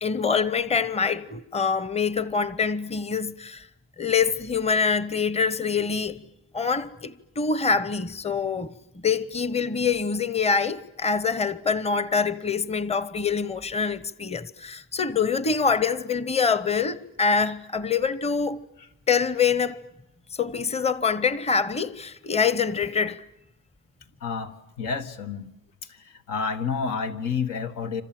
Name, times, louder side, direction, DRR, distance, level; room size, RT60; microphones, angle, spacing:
voice 1, 0.0-3.7 4.0-6.2 6.5-18.6 19.1-19.8 20.4-23.2, left 5 dB, 20° left, 0.9 m, -25 dB
voice 2, 24.2-25.5 25.8-28.0, left 5 dB, 85° left, 1.9 m, -30 dB
28.0 x 26.5 x 7.7 m
cardioid pair, 90°, 30 cm